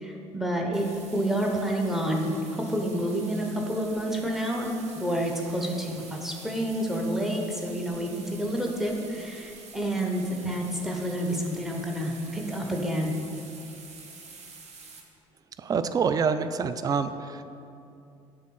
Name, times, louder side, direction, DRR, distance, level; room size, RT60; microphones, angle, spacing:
voice 1, 0.0-4.7 4.9-13.2, equal, ahead, 0 dB, 1.0 m, -29 dB
sound 1, 0.7-15.0, right 4 dB, 40° right, 0.9 m, -47 dB
voice 2, 15.6-17.4, right 6 dB, 20° right, 11 dB, 0.3 m, -26 dB
7.1 x 3.9 x 5.9 m, 2.7 s
figure-of-eight pair, 55°, 17 cm